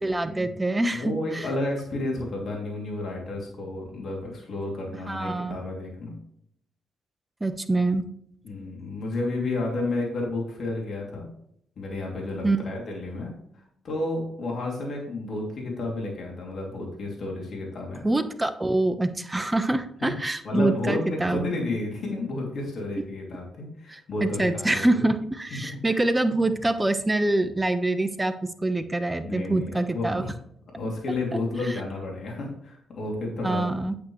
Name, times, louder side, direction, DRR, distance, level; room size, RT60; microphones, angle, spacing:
voice 1, 0.0-1.5 5.1-5.6 7.4-8.0 12.4-12.6 18.0-21.5 23.0-23.1 23.9-28.3 28.6-30.2 31.7-31.8 33.4-33.9, right 2 dB, 20° right, 10 dB, 1.1 m, -25 dB
voice 2, 0.9-6.1 8.4-11.3 11.8-13.3 13.8-18.0 20.0-20.1 20.4-25.1 25.5-25.6 25.9-26.0 29.2-30.3 30.8-33.7, left 2 dB, 60° left, -1 dB, 2.9 m, -31 dB
8.5 x 8.5 x 3.2 m, 0.70 s
hypercardioid pair, 45°, 0 cm